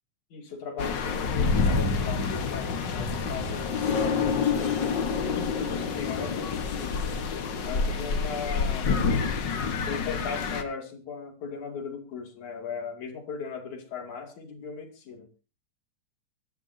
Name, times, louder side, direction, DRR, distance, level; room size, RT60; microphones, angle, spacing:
voice 1, 0.3-7.0 7.7-8.9 9.9-15.3, left 5 dB, 70° left, 4 dB, 4.0 m, -38 dB
sound 1, 0.8-10.6, left 5 dB, 50° left, 1.6 m, -27 dB
25.0 x 12.0 x 2.8 m, 0.31 s
omnidirectional pair, 3.5 m